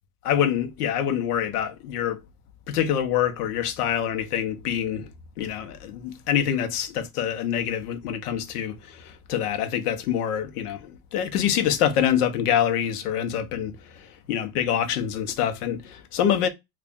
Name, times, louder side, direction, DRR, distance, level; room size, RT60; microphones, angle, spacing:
voice 1, 0.2-2.2 2.7-5.1 5.4-16.5, left 9 dB, 75° left, 0.9 m, -26 dB
3.3 x 2.4 x 3.6 m
supercardioid pair, 150°, 46 cm